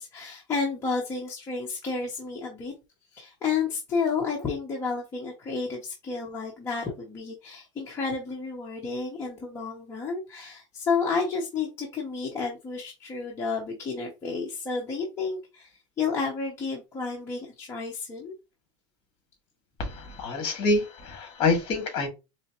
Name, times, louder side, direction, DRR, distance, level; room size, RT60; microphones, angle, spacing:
voice 1, 0.0-2.7 3.1-18.3, left 4 dB, 15° left, 0.8 m, -31 dB
voice 2, 19.8-22.1, left 3 dB, 35° left, 1.9 m, -26 dB
4.3 x 3.3 x 2.9 m
supercardioid pair, 165°, 15 cm